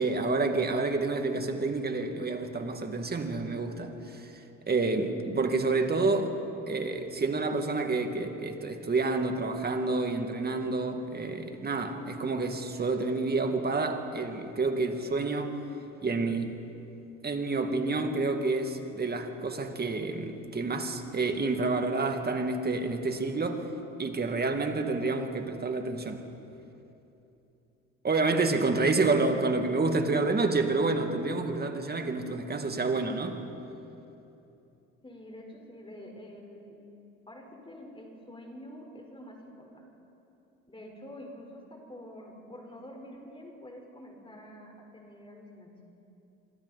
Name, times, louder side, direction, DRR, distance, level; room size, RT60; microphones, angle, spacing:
voice 1, 0.0-6.3 6.7-15.6 16.0-16.6 17.2-23.7 24.0-26.3 28.0-33.4, right 3 dB, 30° right, 5 dB, 2.3 m, -29 dB
voice 2, 35.0-36.8 37.3-39.9 40.7-45.8, equal, 15° left, 1 dB, 4.7 m, -47 dB
26.5 x 24.0 x 4.3 m, 2.9 s
hypercardioid pair, 65°, 31 cm